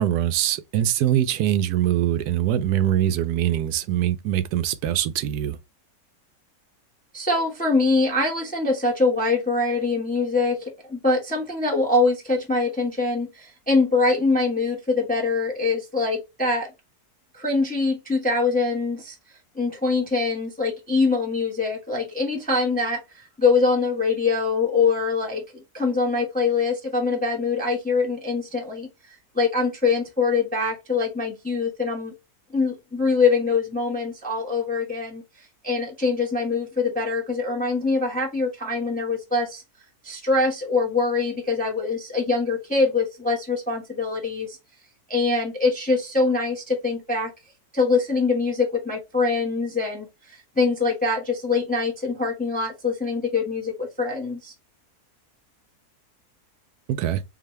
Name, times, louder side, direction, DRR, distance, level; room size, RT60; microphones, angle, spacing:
voice 1, 0.0-5.6 56.9-57.2, right 11 dB, 80° right, 1.1 m, -23 dB
voice 2, 7.1-16.7 17.3-19.1 19.5-28.9 29.3-32.1 32.5-35.2 35.6-39.6 40.0-44.6 45.1-47.3 47.7-54.5, left 3 dB, 5° left, 0.9 m, -23 dB
4.8 x 2.8 x 3.1 m
omnidirectional pair, 1.7 m